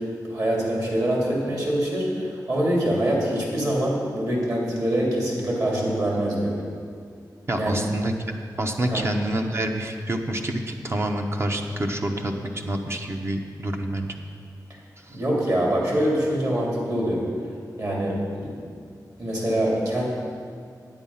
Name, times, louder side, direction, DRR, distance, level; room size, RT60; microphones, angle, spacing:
voice 1, 0.0-6.5 7.6-7.8 8.9-9.1 15.1-17.2 17.8-18.5 19.2-20.0, right 1 dB, 50° right, -3 dB, 2.8 m, -24 dB
voice 2, 7.5-8.1 8.6-14.2 15.0-15.2, right 1 dB, 35° right, 3 dB, 0.8 m, -27 dB
8.8 x 8.6 x 5.5 m, 2.2 s
wide cardioid pair, 95°, 7 cm